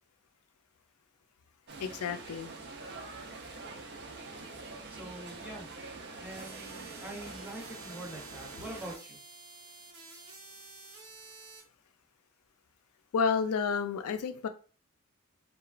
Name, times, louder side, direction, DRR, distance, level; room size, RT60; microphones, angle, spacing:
sound 1, 1.7-9.0, right 3 dB, 50° right, 0.5 m, -45 dB
voice 1, 1.8-2.5 13.1-14.5, left 5 dB, 85° left, 0.4 m, -30 dB
voice 2, 4.9-5.7 6.2-9.2, right 1 dB, 5° right, 0.6 m, -44 dB
sound 2, 6.3-11.6, right 3 dB, 75° right, 0.9 m, -50 dB
2.9 x 2.2 x 2.4 m
head